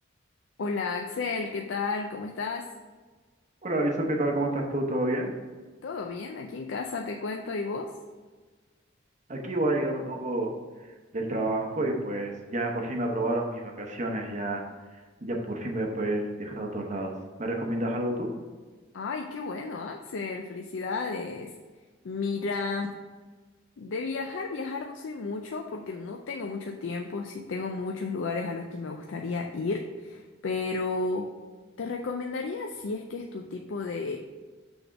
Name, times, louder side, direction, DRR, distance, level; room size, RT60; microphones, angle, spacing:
voice 1, 0.6-2.7 5.8-7.9 18.9-21.5 22.0-22.9 23.8-31.3 31.8-34.2, left 4 dB, 70° left, 2 dB, 0.4 m, -33 dB
voice 2, 3.6-5.3 9.3-10.5 11.1-14.6 15.2-17.1 17.4-18.3, right 1 dB, 35° right, 2 dB, 0.9 m, -29 dB
6.2 x 3.4 x 5.7 m, 1.4 s
head